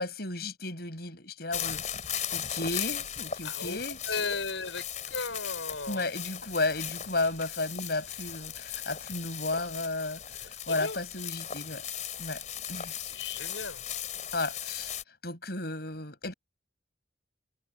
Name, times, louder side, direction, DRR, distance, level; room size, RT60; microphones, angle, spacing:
voice 1, 0.0-1.8 2.3-4.1 5.9-10.2 10.7-11.8 12.2-12.4 12.7-13.0 14.3-14.9 15.2-16.3, left 2 dB, 55° left, 7.6 m, -33 dB
sound 1, 1.5-15.0, left 9 dB, 40° left, 4.8 m, -37 dB
voice 2, 3.4-3.8 4.1-6.0 10.6-11.0 13.0-13.8, left 4 dB, 80° left, 6.9 m, -36 dB
head